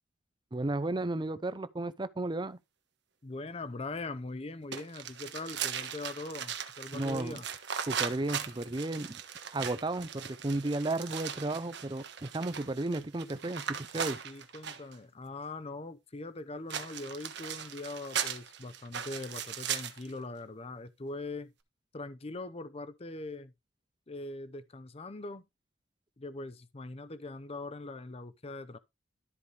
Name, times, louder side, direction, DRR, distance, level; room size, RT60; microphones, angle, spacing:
voice 1, 0.5-2.6 6.9-7.4 7.9-9.2 9.5-14.2, right 2 dB, 25° right, 0.6 m, -33 dB
voice 2, 3.2-7.5 14.2-21.5 21.9-23.5 24.1-25.4 26.2-28.8, left 2 dB, 30° left, 0.6 m, -41 dB
sound 1, 4.7-15.0 16.7-20.1, right 8 dB, 60° right, 1.2 m, -38 dB
13.0 x 4.8 x 3.3 m
head